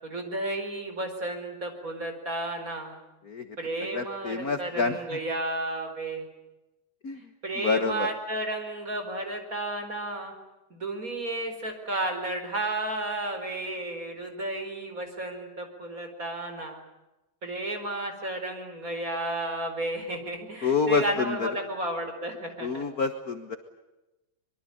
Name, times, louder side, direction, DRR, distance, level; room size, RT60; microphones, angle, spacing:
voice 1, 0.0-3.0 3.6-6.3 7.4-10.3 10.7-16.8 17.4-22.8, right 2 dB, 25° right, 5 dB, 4.8 m, -32 dB
voice 2, 3.2-3.6 3.9-5.2 7.0-7.2 7.5-8.1 20.6-21.5 22.6-23.6, left 5 dB, 40° left, 8 dB, 1.4 m, -28 dB
24.5 x 23.0 x 8.8 m, 1.0 s
omnidirectional pair, 3.4 m